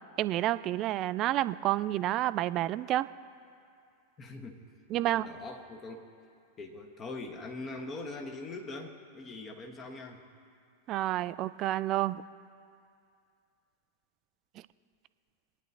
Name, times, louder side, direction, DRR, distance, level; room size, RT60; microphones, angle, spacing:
voice 1, 0.2-3.1 4.9-5.3 10.9-12.2, right 14 dB, 35° right, 16 dB, 0.3 m, -29 dB
voice 2, 4.2-4.6 5.0-6.1 6.6-10.2, left 2 dB, 25° left, 3 dB, 1.4 m, -42 dB
23.5 x 9.8 x 2.8 m, 2.3 s
figure-of-eight pair, 90°, 0 cm